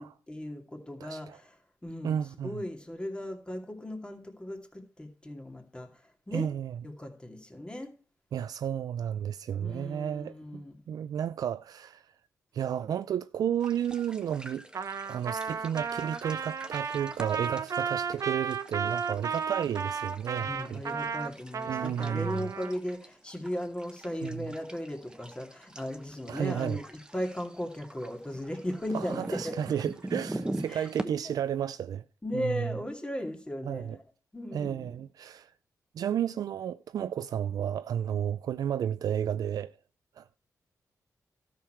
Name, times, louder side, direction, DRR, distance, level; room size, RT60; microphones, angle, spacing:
voice 1, 0.0-1.5 1.8-2.2 2.4-6.5 6.8-7.9 9.6-10.8 20.4-29.6 30.7-31.1 32.2-34.0 34.3-35.0, left 1 dB, 15° left, 2.4 m, -37 dB
voice 2, 1.0-1.4 2.0-2.6 6.3-6.8 8.3-12.1 12.5-14.7 15.1-20.8 21.7-22.5 24.2-24.5 26.3-26.8 28.9-32.0 32.3-32.7 33.6-34.0 34.5-35.5 35.9-39.8 40.2-40.4, right 9 dB, 75° right, 0.4 m, -32 dB
sound 1, 13.6-31.1, right 1 dB, 15° right, 1.1 m, -44 dB
Trumpet, 14.7-22.8, right 6 dB, 55° right, 0.8 m, -34 dB
12.5 x 6.6 x 4.4 m
cardioid pair, 90°, 6 cm